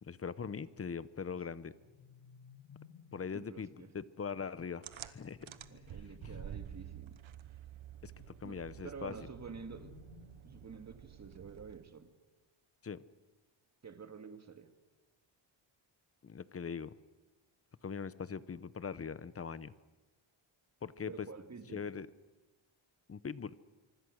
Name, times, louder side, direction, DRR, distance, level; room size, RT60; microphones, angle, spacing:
voice 1, 0.0-1.7 3.1-5.5 8.0-8.1 8.4-9.1 12.8-13.0 16.2-16.9 17.8-19.7 20.8-21.3 21.7-22.1 23.1-23.5, left 6 dB, 30° left, 16 dB, 0.8 m, -41 dB
sound 1, 1.6-3.4 5.2-7.1 9.0-10.9, left 8 dB, 85° left, 2.6 m, -58 dB
voice 2, 3.3-3.9 5.7-7.2 8.4-10.0 10.4-12.1 13.8-14.7 21.1-21.8, right 5 dB, 30° right, 7 dB, 2.1 m, -49 dB
sound 2, 4.8-12.0, right 11 dB, 65° right, 1.2 m, -50 dB
25.5 x 24.5 x 6.4 m, 1.2 s
wide cardioid pair, 130°, 50 cm